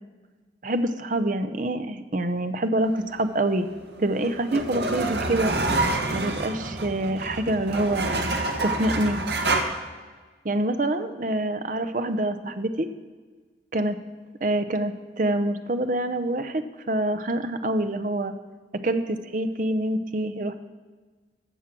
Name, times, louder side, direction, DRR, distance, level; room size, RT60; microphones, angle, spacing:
voice 1, 0.6-3.7 4.0-5.5 6.1-8.1 8.6-9.2 10.4-12.9 13.7-13.9 14.4-18.3 18.8-20.5, right 1 dB, 45° right, 10 dB, 0.7 m, -26 dB
sound 1, 3.7-9.6, right 2 dB, 70° right, 1.3 m, -27 dB
13.5 x 7.2 x 6.1 m, 1.4 s
head